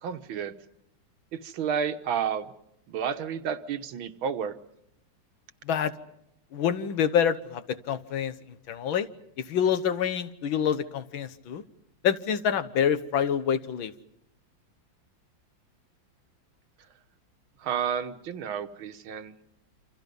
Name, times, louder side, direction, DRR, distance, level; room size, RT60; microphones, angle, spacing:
voice 1, 0.0-0.5 1.3-2.5 2.9-4.6 17.6-19.3, right 7 dB, 90° right, 9 dB, 2.0 m, -31 dB
voice 2, 6.5-8.3 8.7-9.1 9.4-11.6 12.0-13.9, left 8 dB, 85° left, 12 dB, 1.9 m, -26 dB
28.5 x 26.5 x 5.4 m, 0.81 s
omnidirectional pair, 2.1 m